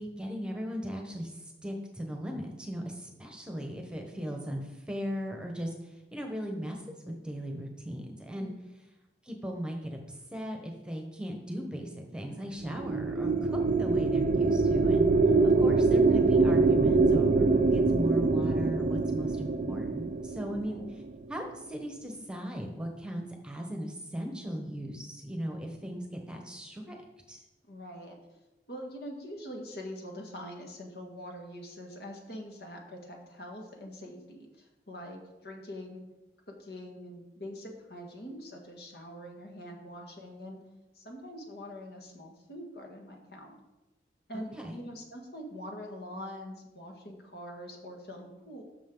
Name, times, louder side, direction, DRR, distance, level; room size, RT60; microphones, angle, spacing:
voice 1, 0.0-8.5 9.2-15.1 15.4-20.8 21.3-27.0 27.3-27.4 44.3-44.8, equal, 5° right, 2 dB, 1.1 m, -38 dB
voice 2, 8.4-8.7 15.2-15.6 20.7-20.9 27.7-28.2 28.7-36.0 36.5-40.6 40.9-43.6 44.3-48.6, equal, 60° left, 2 dB, 1.8 m, -44 dB
sound 1, 12.6-21.2, right 3 dB, 45° right, 0.5 m, -24 dB
13.5 x 6.4 x 3.9 m, 1.0 s
head